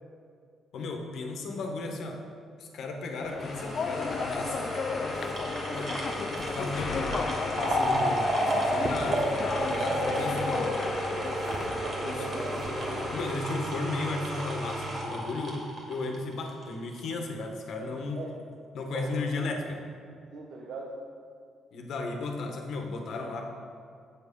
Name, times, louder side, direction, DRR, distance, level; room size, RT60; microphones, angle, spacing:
voice 1, 0.7-2.2 2.6-4.7 5.7-5.9 6.5-7.2 7.6-9.3 9.7-10.7 12.0-12.2 13.1-18.2 18.7-19.7 21.7-23.4, left 3 dB, 70° left, 2 dB, 1.4 m, -34 dB
sound 1, 3.2-13.4, left 5 dB, 50° left, 0.5 m, -35 dB
sound 2, 3.4-16.6 17.0-17.1, right 1 dB, 55° right, 2.6 m, -31 dB
sound 3, 5.0-13.3, right 1 dB, 30° right, 1.0 m, -46 dB
voice 2, 11.4-12.6 18.1-18.3 18.8-19.4 20.3-21.0, right 3 dB, 70° right, -2 dB, 1.1 m, -40 dB
7.6 x 7.5 x 5.4 m, 2.3 s
cardioid pair, 90°, 0 cm